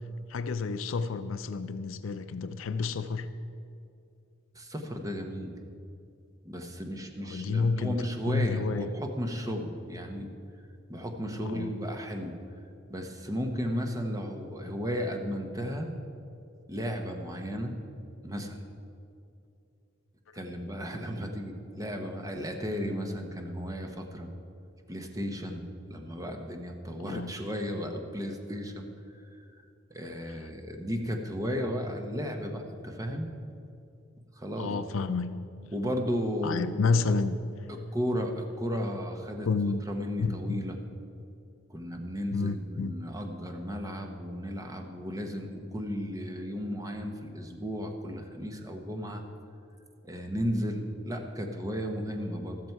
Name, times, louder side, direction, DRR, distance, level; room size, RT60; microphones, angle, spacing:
voice 1, 0.3-3.3 7.3-8.0 8.3-8.9 11.4-11.7 27.0-27.3 34.6-35.3 36.4-37.4 39.5-39.8 40.2-40.6 42.3-42.9, left 4 dB, 70° left, 11 dB, 0.5 m, -29 dB
voice 2, 4.5-5.6 6.4-10.3 10.9-12.3 12.9-15.9 16.7-17.8 18.2-18.7 20.3-24.3 24.9-25.6 25.9-28.9 29.3-29.4 29.9-33.3 34.4-34.8 35.7-36.9 37.7-39.5 39.9-40.8 41.7-49.2 50.0-52.6, equal, 15° right, 4 dB, 1.1 m, -34 dB
13.5 x 13.5 x 4.6 m, 2.6 s
head